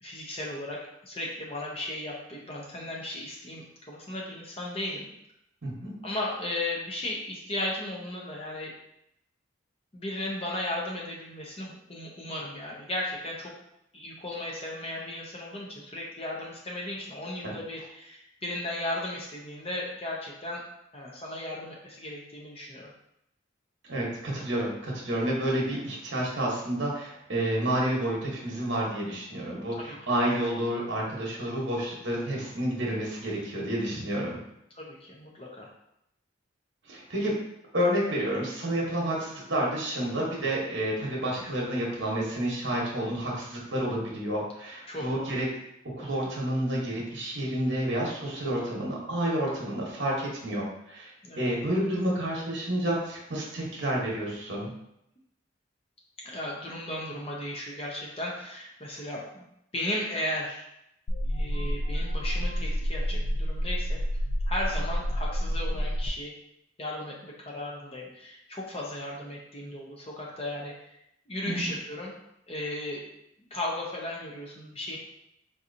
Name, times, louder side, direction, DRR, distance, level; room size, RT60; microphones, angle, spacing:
voice 1, 0.0-5.1 6.0-8.7 9.9-13.5 13.9-20.6 20.9-22.9 29.7-30.0 34.7-35.7 38.0-38.3 44.9-45.4 46.0-46.1 51.2-51.5 56.2-59.4 59.7-60.7 61.2-64.0 64.5-66.3 66.8-70.7 71.3-72.1 72.5-73.0 73.5-75.0, left 1 dB, 30° left, -3 dB, 0.7 m, -35 dB
voice 2, 5.6-6.0 17.4-17.5 23.9-34.4 36.9-37.3 37.7-45.4 46.0-51.1 51.4-54.7 71.5-71.7, right 1 dB, 70° right, -3 dB, 1.0 m, -30 dB
sound 1, 61.1-66.1, equal, 50° left, 0.3 m, -29 dB
3.8 x 2.9 x 2.6 m, 0.80 s
head